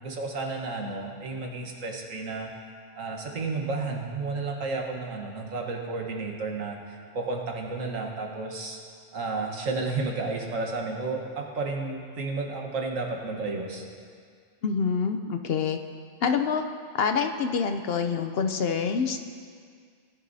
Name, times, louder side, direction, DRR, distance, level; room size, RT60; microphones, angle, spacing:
voice 1, 0.0-2.5 3.0-8.8 9.1-13.8, right 3 dB, 85° right, 1 dB, 1.7 m, -32 dB
voice 2, 14.6-15.8 16.2-16.6 16.9-19.2, left 6 dB, 60° left, 6 dB, 0.7 m, -26 dB
18.0 x 10.5 x 2.7 m, 2.1 s
omnidirectional pair, 1.3 m